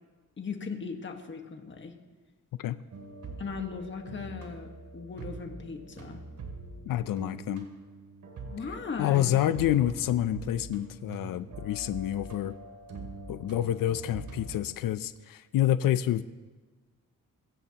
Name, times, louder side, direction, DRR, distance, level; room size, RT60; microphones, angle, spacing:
voice 1, 0.4-1.9 3.4-6.2 8.5-9.4, left 5 dB, 35° left, 4 dB, 1.5 m, -38 dB
sound 1, 2.9-14.6, right 3 dB, 60° right, 2.7 m, -44 dB
voice 2, 6.9-7.6 9.0-12.5 13.3-16.2, left 12 dB, 85° left, 13 dB, 0.6 m, -28 dB
23.0 x 16.0 x 2.9 m, 1.3 s
cardioid pair, 115°, 33 cm